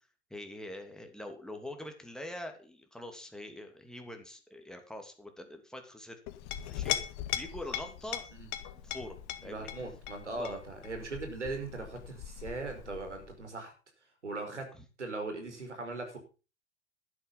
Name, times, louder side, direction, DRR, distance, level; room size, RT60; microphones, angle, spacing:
voice 1, 0.3-6.2 6.7-6.9 7.3-8.3 8.8-9.2 9.4-9.7 10.3-10.6 14.7-14.8, left 1 dB, ahead, 5 dB, 2.8 m, -44 dB
Chink clink, 6.3-13.4, left 11 dB, 45° left, 2.0 m, -39 dB
voice 2, 9.5-13.7 14.2-14.7 15.0-16.2, right 3 dB, 85° right, 5 dB, 5.0 m, -39 dB
12.0 x 11.0 x 5.5 m, 0.33 s
figure-of-eight pair, 95°, 34 cm